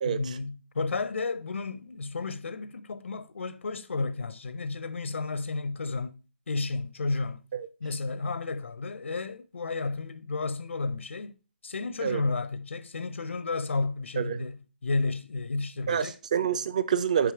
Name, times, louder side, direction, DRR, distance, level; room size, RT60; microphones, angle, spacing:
voice 1, 0.0-6.2 6.5-7.4 7.8-11.4 11.6-16.2, left 3 dB, 90° left, 0.6 m, -32 dB
voice 2, 14.2-14.5 15.9-17.3, right 8 dB, 35° right, 0.5 m, -27 dB
6.8 x 5.1 x 4.7 m
hypercardioid pair, 170°, 7 cm